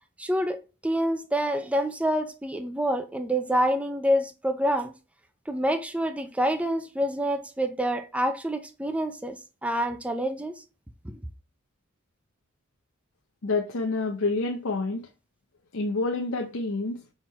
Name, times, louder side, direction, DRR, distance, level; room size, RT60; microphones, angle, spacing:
voice 1, 0.2-4.9 5.5-10.6 11.0-11.2, equal, 5° right, 0.5 m, -27 dB
voice 2, 13.4-15.1 15.7-17.0, left 3 dB, 70° left, 0.7 m, -28 dB
4.5 x 3.7 x 5.5 m
head